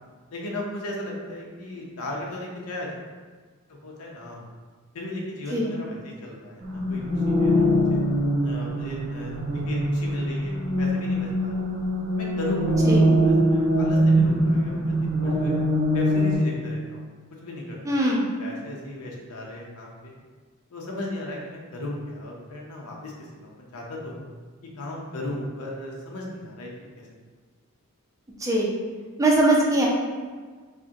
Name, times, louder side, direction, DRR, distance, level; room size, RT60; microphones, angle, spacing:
voice 1, 0.3-2.9 3.8-4.5 4.9-8.0 8.4-9.4 9.7-11.5 12.1-15.6 15.9-17.0 17.4-18.1 18.4-20.2 20.7-24.3 24.8-26.7 27.0-27.1, left 1 dB, 90° left, -2 dB, 0.7 m, -36 dB
sound 1, 6.6-16.4, equal, 50° right, 0.7 m, -23 dB
voice 2, 17.8-18.3 28.4-28.8 29.2-29.9, right 1 dB, 15° right, -3 dB, 0.5 m, -21 dB
4.8 x 2.2 x 2.8 m, 1.5 s
head